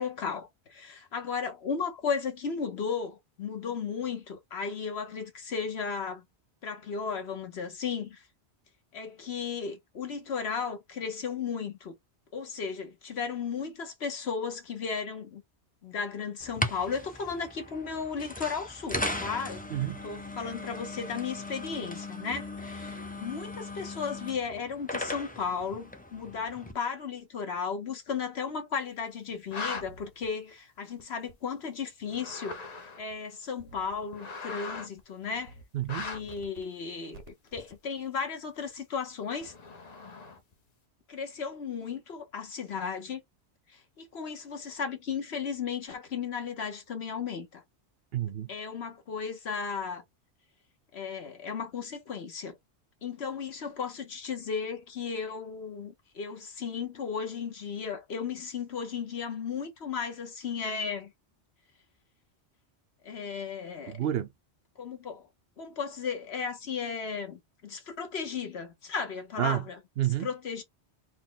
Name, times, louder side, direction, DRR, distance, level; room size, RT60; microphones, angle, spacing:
voice 1, 0.0-6.2 6.6-8.2 8.9-11.9 12.3-15.4 15.8-19.6 20.0-32.6 33.0-35.5 36.0-37.2 37.5-39.5 41.1-43.2 44.0-47.6 48.5-50.0 50.9-52.6 53.0-61.1 63.0-63.9 64.8-65.2 65.6-69.8 70.2-70.6, left 6 dB, 65° left, 1.3 m, -35 dB
sound 1, 16.4-26.7, left 1 dB, 10° left, 0.5 m, -38 dB
voice 2, 19.7-20.0 35.7-36.1 48.1-48.5 63.9-64.3 69.4-69.6 70.0-70.3, right 12 dB, 65° right, 0.7 m, -29 dB
sound 2, 29.3-29.8 31.0-31.1 32.0-33.1 33.9-35.0 35.8-36.3 37.6-37.9 39.4-40.5, left 4 dB, 40° left, 0.8 m, -39 dB
sound 3, 29.8-30.3 31.3-31.4 33.6-34.0 34.5-34.8 35.2-35.6 36.0-36.6 37.1-37.6, right 3 dB, 85° right, 1.3 m, -51 dB
4.3 x 2.2 x 3.9 m
omnidirectional pair, 1.2 m